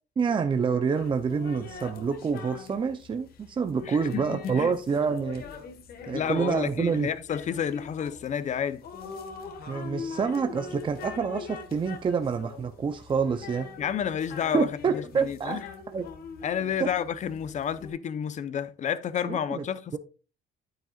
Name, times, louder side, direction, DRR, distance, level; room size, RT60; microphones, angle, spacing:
voice 1, 0.2-5.4 6.1-7.1 9.7-13.7 14.5-15.6 15.9-16.1 16.8-16.9 19.2-19.6, right 5 dB, 30° right, 0.6 m, -27 dB
sound 1, 0.9-17.9, left 5 dB, 65° left, 1.6 m, -43 dB
voice 2, 3.8-4.7 6.1-8.8 13.8-15.6 16.4-20.0, left 8 dB, 45° left, 0.8 m, -30 dB
9.1 x 9.1 x 2.4 m
cardioid pair, 110°, 17 cm